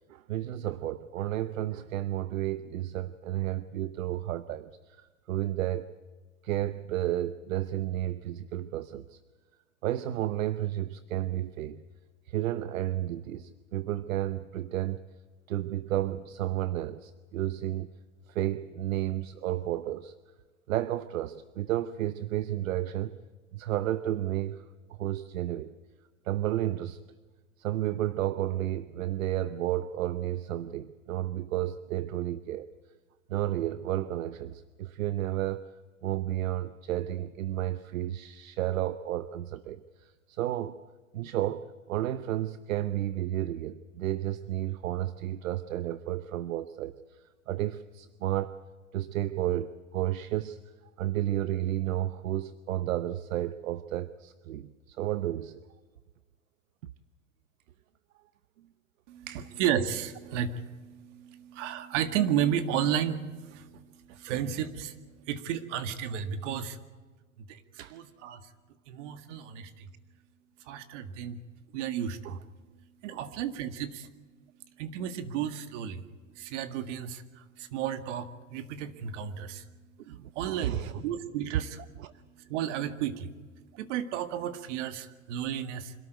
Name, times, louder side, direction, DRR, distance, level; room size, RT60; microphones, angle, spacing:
voice 1, 0.1-5.9 6.4-9.2 9.8-11.8 12.3-15.0 15.5-17.9 18.3-20.1 20.7-23.2 23.5-24.6 25.0-25.7 26.2-27.0 27.6-32.7 33.3-35.7 36.0-39.8 40.3-40.8 41.1-46.9 47.5-48.6 48.9-50.6 51.0-55.6 59.3-59.5 67.8-67.9 72.2-72.4 73.1-73.2 80.0-81.0 82.0-82.1, right 13 dB, 75° right, 14 dB, 0.9 m, -32 dB
voice 2, 59.1-65.0 65.3-66.8 67.5-67.6 67.9-68.4 68.9-69.9 70.7-71.4 71.7-72.4 73.0-74.1 74.8-76.0 76.4-79.7 80.4-81.8 82.5-83.3 83.8-86.0, right 9 dB, 60° right, 10 dB, 2.0 m, -33 dB
26.0 x 13.0 x 9.3 m, 1.4 s
hypercardioid pair, 120°, 40 cm